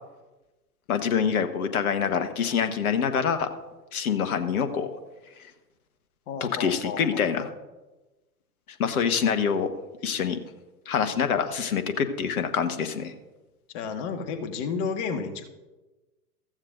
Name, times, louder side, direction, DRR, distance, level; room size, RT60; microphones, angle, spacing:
voice 1, 0.9-3.5 3.9-4.9 6.4-7.5 8.8-9.7 10.0-10.4 10.9-13.1, left 7 dB, 65° left, 9 dB, 1.4 m, -25 dB
voice 2, 6.3-7.5 13.7-15.5, left 5 dB, 45° left, 7 dB, 1.6 m, -32 dB
15.5 x 14.5 x 2.6 m, 1.1 s
figure-of-eight pair, 100°, 48 cm